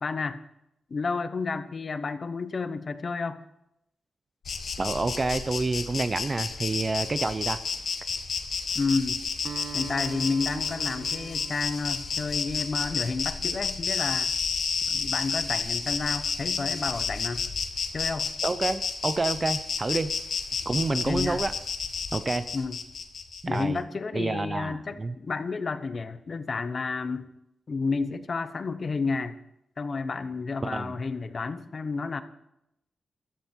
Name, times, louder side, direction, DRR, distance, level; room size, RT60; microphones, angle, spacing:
voice 1, 0.0-0.4 0.9-3.4 8.7-9.2 9.7-14.3 14.9-17.4 17.9-18.3 20.9-21.4 22.5-22.8 23.5-27.3 27.7-29.4 29.8-32.2, left 4 dB, 40° left, 11 dB, 0.9 m, -31 dB
Insect, 4.4-23.6, left 5 dB, 55° left, 1.5 m, -31 dB
voice 2, 4.8-7.6 18.4-20.1 20.7-21.5 22.1-22.5 23.4-23.8 24.1-25.1 30.6-31.0, right 3 dB, 25° right, 12 dB, 0.6 m, -28 dB
Acoustic guitar, 9.4-13.9, right 8 dB, 70° right, 1.2 m, -44 dB
15.5 x 14.5 x 4.5 m, 0.82 s
wide cardioid pair, 175°, 0 cm